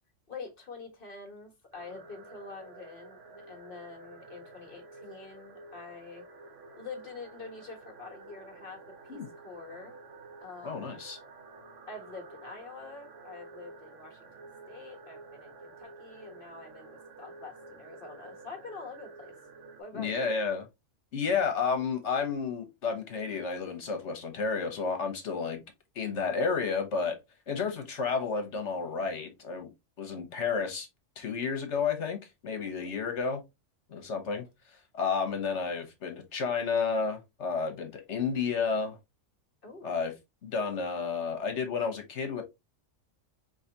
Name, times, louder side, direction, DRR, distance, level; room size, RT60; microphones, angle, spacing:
voice 1, 0.3-6.3 6.8-10.0 10.4-11.0 11.9-14.3 14.7-19.4 19.8-20.4 32.6-32.9 39.6-39.9, left 4 dB, 45° left, 1.5 m, -46 dB
sound 1, 1.7-19.8, right 3 dB, 80° right, 1.2 m, -50 dB
voice 2, 10.6-11.2 19.9-20.6 21.1-25.6 25.9-27.2 27.5-29.7 30.0-30.9 31.2-32.2 32.4-33.4 33.9-39.0 39.8-40.1 40.4-42.4, left 5 dB, 70° left, 1.4 m, -31 dB
4.8 x 3.1 x 2.8 m
omnidirectional pair, 1.3 m